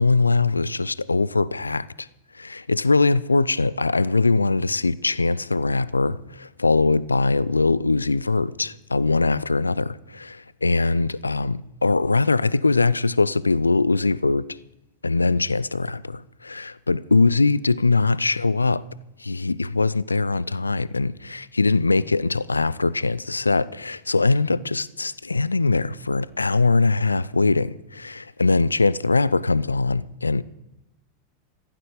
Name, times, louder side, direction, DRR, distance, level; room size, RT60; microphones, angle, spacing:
voice 1, 0.0-1.9 2.4-14.5 15.0-18.9 19.2-30.4, left 3 dB, 80° left, 0.5 m, -22 dB
15.5 x 15.5 x 4.9 m
figure-of-eight pair, 90°, 0 cm